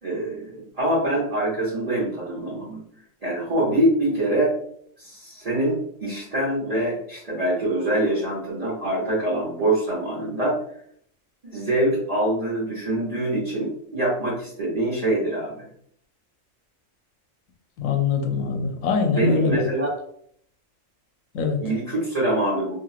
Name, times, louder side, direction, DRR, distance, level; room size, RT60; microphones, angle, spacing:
voice 1, 0.0-2.8 3.2-4.5 5.0-10.6 11.4-15.7 19.1-19.9 21.6-22.7, right 1 dB, 35° right, -7 dB, 0.8 m, -24 dB
voice 2, 17.8-19.6 21.3-21.6, left 5 dB, 85° left, 4 dB, 1.0 m, -23 dB
3.0 x 2.7 x 2.4 m, 0.65 s
omnidirectional pair, 1.3 m